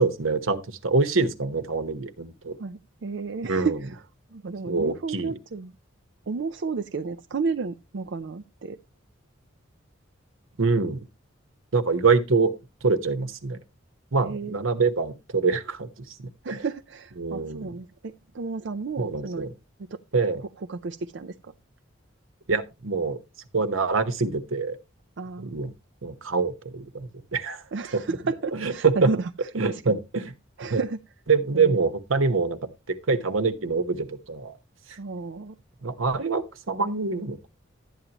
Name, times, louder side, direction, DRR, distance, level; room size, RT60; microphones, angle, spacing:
voice 1, 0.0-2.6 3.4-3.8 4.7-5.3 10.6-11.1 11.7-12.5 12.8-13.6 14.1-16.6 17.2-17.7 19.0-19.5 20.1-20.4 22.5-23.2 23.5-24.8 25.4-25.7 26.0-27.6 27.9-28.2 28.5-29.1 29.5-30.3 30.7-30.8 31.3-34.6 34.9-35.0 35.8-37.5, right 4 dB, 85° right, 1.1 m, -25 dB
voice 2, 2.6-4.0 4.3-5.7 6.3-8.8 14.2-14.6 16.4-19.5 19.9-20.0 20.6-21.5 25.2-25.5 27.7-29.3 29.7-30.0 30.6-31.0 31.5-31.8 35.0-35.6, right 4 dB, 60° right, 0.5 m, -32 dB
12.0 x 9.2 x 2.9 m
head